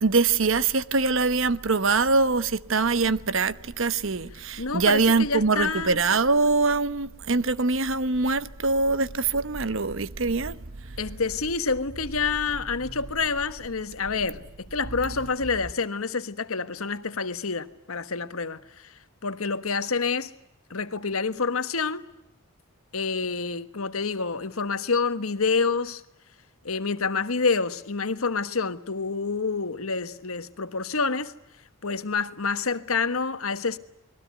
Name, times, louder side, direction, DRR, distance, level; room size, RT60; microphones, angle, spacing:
voice 1, 0.0-10.6 10.9-11.0, right 4 dB, 65° right, 1.0 m, -23 dB
voice 2, 4.6-6.0 11.0-18.9 19.2-20.3 20.7-22.0 22.9-26.0 26.6-31.3 31.8-33.8, left 4 dB, 80° left, 1.4 m, -28 dB
29.5 x 21.5 x 9.4 m
head